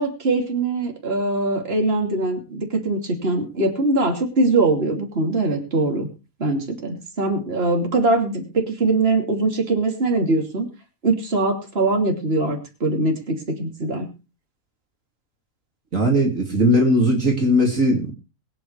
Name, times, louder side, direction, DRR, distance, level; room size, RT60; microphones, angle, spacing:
voice 1, 0.0-6.1 6.4-10.7 11.0-14.1, right 2 dB, 45° right, 2 dB, 3.1 m, -22 dB
voice 2, 15.9-18.1, equal, 60° right, 2 dB, 3.0 m, -18 dB
22.5 x 9.2 x 3.3 m, 0.31 s
omnidirectional pair, 1.5 m